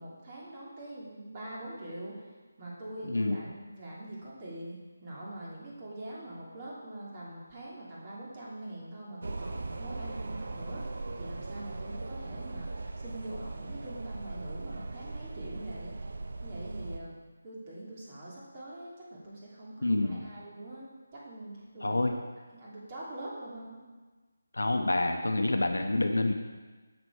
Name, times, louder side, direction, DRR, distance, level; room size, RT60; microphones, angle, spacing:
voice 1, 0.0-2.3 2.6-10.8 11.2-12.7 13.0-15.9 16.4-17.2 17.4-20.8 21.1-22.0 22.5-23.8, right 1 dB, 30° right, -6 dB, 2.9 m, -43 dB
voice 2, 3.0-3.4 19.8-20.2 21.8-22.1 24.5-26.3, left 2 dB, 75° left, 5 dB, 1.1 m, -27 dB
sound 1, 9.2-17.0, right 2 dB, 55° right, 0.8 m, -39 dB
9.8 x 7.4 x 4.8 m, 1.3 s
figure-of-eight pair, 155°, 0 cm